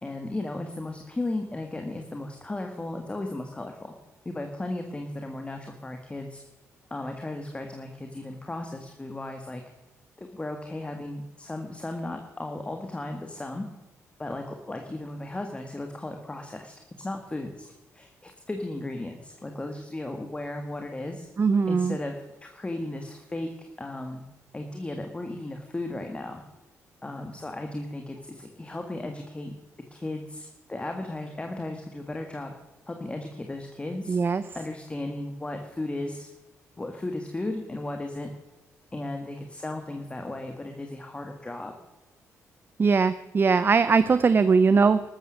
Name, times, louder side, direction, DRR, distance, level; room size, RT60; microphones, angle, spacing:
voice 1, 0.0-3.9 4.3-6.4 6.9-9.6 10.2-13.7 14.2-21.3 21.7-24.2 24.5-26.4 27.0-29.5 29.9-32.5 32.9-34.2 34.5-36.3 36.8-38.3 38.9-41.7, left 2 dB, 20° left, 4 dB, 1.8 m, -35 dB
voice 2, 21.4-22.0 34.1-34.4 42.8-45.0, right 5 dB, 35° right, 14 dB, 0.6 m, -20 dB
13.5 x 13.0 x 6.4 m, 1.1 s
cardioid pair, 80°, 6 cm